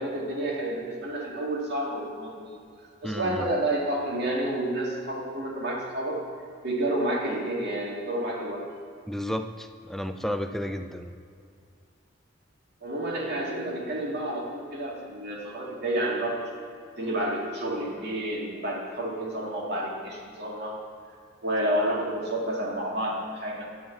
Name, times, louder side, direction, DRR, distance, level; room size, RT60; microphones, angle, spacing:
voice 1, 0.0-2.5 3.0-6.2 6.6-8.7 12.8-16.5 17.0-20.8 21.4-23.7, right 1 dB, 60° right, -2 dB, 2.2 m, -30 dB
voice 2, 3.0-3.5 9.1-11.1, equal, ahead, 7 dB, 0.4 m, -32 dB
11.0 x 5.0 x 8.2 m, 2.3 s
head